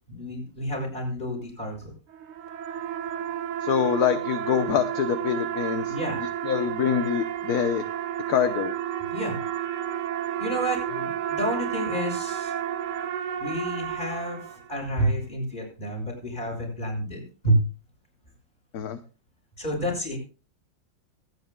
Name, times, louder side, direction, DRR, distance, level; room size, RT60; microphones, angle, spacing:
voice 1, 0.1-1.9 5.9-6.2 9.1-9.4 10.4-10.8 11.3-12.5 13.4-17.6 19.6-20.2, right 1 dB, 25° left, 0 dB, 6.2 m, -29 dB
sound 1, 2.1-14.9, right 10 dB, 70° right, 1.5 m, -31 dB
voice 2, 3.6-5.9 6.4-7.8 8.3-8.7 10.9-11.0 18.7-19.0, left 8 dB, 60° left, 9 dB, 1.2 m, -25 dB
24.5 x 9.5 x 2.3 m, 0.34 s
omnidirectional pair, 2.0 m